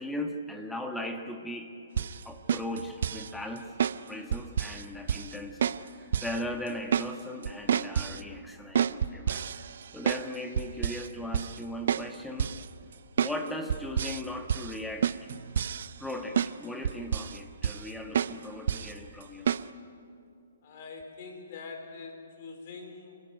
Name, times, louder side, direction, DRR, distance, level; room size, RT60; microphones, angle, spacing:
voice 1, 0.0-1.7 2.2-3.7 4.1-9.5 9.9-12.5 13.2-15.1 16.0-19.5, left 1 dB, 5° left, 5 dB, 1.5 m, -38 dB
sound 1, 2.0-2.2 2.5-3.3 3.8-4.0 4.3-4.8 5.1-5.3 5.6-5.8 6.1-6.4 6.7-7.1 7.4-8.2 8.8-10.3 10.6-11.1 11.3-11.6 11.9-12.1 12.4-12.6 13.2-13.4 13.7-14.2 14.5-14.7 15.0-16.1 16.4-16.5 16.8-17.4 17.6-17.9 18.1-18.4 18.7-18.9 19.5-19.6, right 8 dB, 60° right, 0.6 m, -29 dB
voice 2, 20.6-23.2, left 4 dB, 50° left, 5 dB, 4.2 m, -44 dB
27.5 x 15.5 x 9.3 m, 2.5 s
hypercardioid pair, 135°, 0 cm